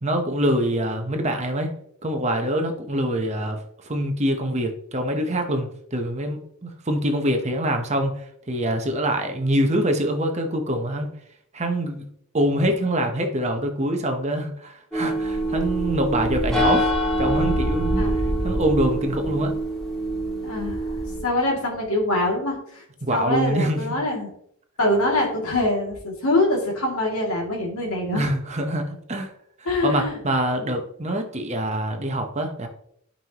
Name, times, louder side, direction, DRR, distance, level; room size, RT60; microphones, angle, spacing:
voice 1, 0.0-1.7 2.0-11.1 11.5-12.1 12.3-16.9 17.2-18.1 18.4-19.5 23.0-24.0 28.1-29.3 29.8-32.7, right 1 dB, 30° right, 4 dB, 1.0 m, -25 dB
sound 1, 14.9-21.2, right 1 dB, 5° left, 2.6 m, -24 dB
voice 2, 20.4-20.9 21.2-22.8 23.1-24.3 24.8-28.3 29.6-30.7, left 1 dB, 75° left, -1 dB, 2.6 m, -24 dB
12.5 x 5.6 x 3.0 m, 0.70 s
head